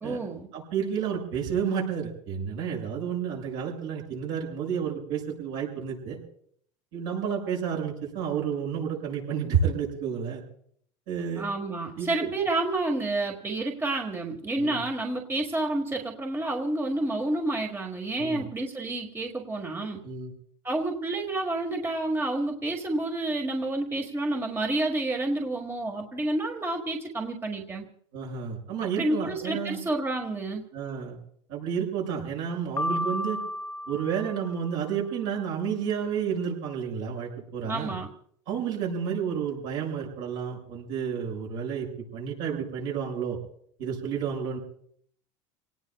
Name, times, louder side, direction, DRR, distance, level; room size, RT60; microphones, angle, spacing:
voice 1, 0.0-0.5 11.4-20.0 20.6-27.9 29.0-30.6 37.6-38.1, right 2 dB, 15° right, 2 dB, 1.6 m, -29 dB
voice 2, 0.5-6.2 6.9-10.4 11.1-11.4 12.0-12.3 14.6-14.8 18.2-18.4 20.0-20.3 28.1-29.8 30.7-31.2 31.5-33.4 33.9-38.0 38.5-41.9 42.1-43.4 43.8-44.6, right 7 dB, 70° right, -2 dB, 6.7 m, -30 dB
Piano, 32.8-34.9, left 1 dB, 15° left, 0.6 m, -33 dB
28.5 x 18.5 x 2.3 m, 0.64 s
supercardioid pair, 110°, 16 cm